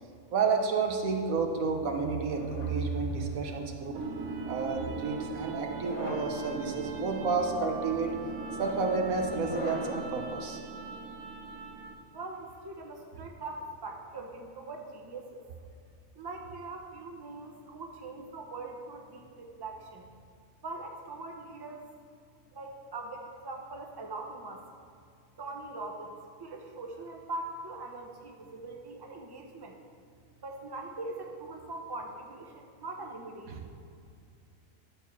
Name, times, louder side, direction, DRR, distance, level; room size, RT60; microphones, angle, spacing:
voice 1, 0.3-3.9 4.5-8.1 8.6-10.6 33.5-33.6, right 4 dB, 90° right, 3 dB, 1.4 m, -30 dB
sound 1, 2.3-3.7 4.5-4.9 5.7-6.4 7.1-7.4 8.3-10.2, left 1 dB, 65° left, 1.3 m, -42 dB
sound 2, 3.9-12.1, right 4 dB, 65° right, 1.0 m, -39 dB
voice 2, 12.1-15.4 16.1-20.1 20.6-21.9 22.5-24.7 25.4-29.8 30.4-33.5, right 2 dB, 20° right, 2 dB, 0.8 m, -42 dB
11.0 x 4.6 x 7.0 m, 2.4 s
omnidirectional pair, 1.4 m